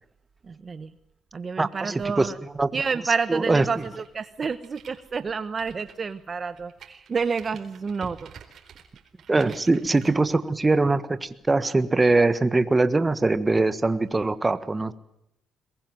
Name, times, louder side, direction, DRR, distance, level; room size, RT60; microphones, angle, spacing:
voice 1, 0.4-0.9 1.3-2.4 2.7-8.3 9.5-9.6, right 5 dB, 40° right, 13 dB, 1.0 m, -29 dB
voice 2, 1.6-2.3 2.6-2.7 3.3-3.6 9.3-14.9, right 3 dB, 20° right, 14 dB, 1.4 m, -22 dB
sound 1, 3.8-10.1, right 8 dB, 65° right, 4.1 m, -51 dB
22.5 x 21.0 x 7.8 m, 0.78 s
cardioid pair, 90°, 0 cm